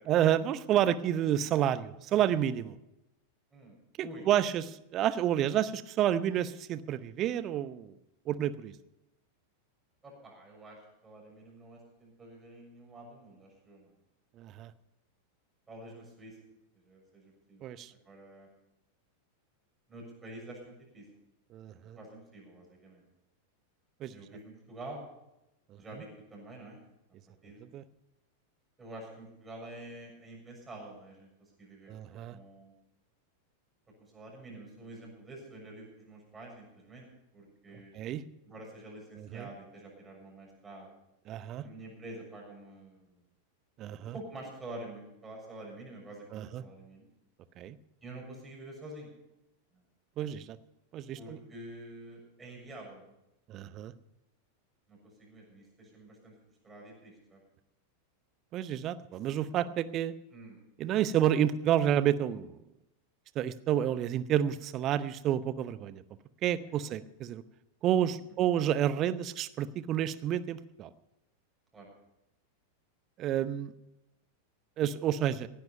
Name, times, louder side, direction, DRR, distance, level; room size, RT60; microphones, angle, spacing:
voice 1, 0.0-2.7 4.0-7.9 8.3-8.7 14.4-14.7 17.6-17.9 21.5-22.0 24.0-24.1 27.7-27.8 31.9-32.4 37.9-38.2 39.2-39.5 41.3-41.6 43.8-44.1 46.3-46.6 47.6-47.8 50.2-50.6 50.9-51.4 53.5-53.9 58.5-60.1 60.8-62.6 63.3-66.0 66.4-67.4 67.8-70.9 73.2-73.7 74.8-75.5, right 11 dB, 35° right, 15 dB, 0.8 m, -29 dB
voice 2, 10.0-13.9 15.7-16.4 16.8-17.7 18.0-18.5 19.9-21.0 21.7-23.0 24.1-25.0 25.8-26.8 27.4-27.6 28.8-32.7 34.0-37.1 37.3-37.9 38.4-40.9 41.6-43.2 44.1-47.1 48.0-49.1 51.2-53.1 54.9-56.3 56.6-57.4 59.4-59.7 60.3-60.6 66.6-66.8 71.7-71.9, right 1 dB, 15° right, -1 dB, 6.8 m, -48 dB
17.0 x 10.5 x 5.7 m, 0.90 s
figure-of-eight pair, 90°, 0 cm